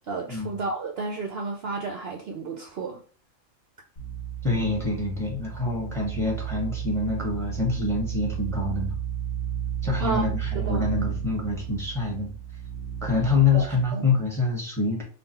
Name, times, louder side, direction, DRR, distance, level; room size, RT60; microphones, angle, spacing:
voice 1, 0.1-3.0 10.0-10.2 10.5-10.8 13.5-13.7 13.9-14.1, right 4 dB, 60° right, 2 dB, 0.8 m, -31 dB
sound 1, 4.0-13.9, right 9 dB, 50° left, 1.4 m, -33 dB
voice 2, 4.4-8.9 9.8-12.3 13.0-15.0, left 3 dB, ahead, -1 dB, 1.3 m, -26 dB
3.8 x 2.5 x 4.0 m, 0.41 s
omnidirectional pair, 1.3 m